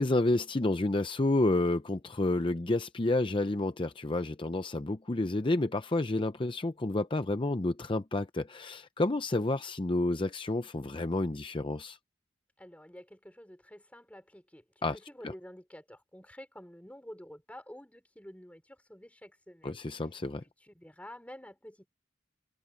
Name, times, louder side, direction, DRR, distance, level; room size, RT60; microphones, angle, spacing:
voice 1, 0.0-12.0 14.8-15.0 15.2-15.3 19.6-20.4, left 2 dB, 25° left, 0.6 m, -30 dB
voice 2, 12.6-19.8 20.6-21.9, equal, 10° left, 5.5 m, -50 dB
head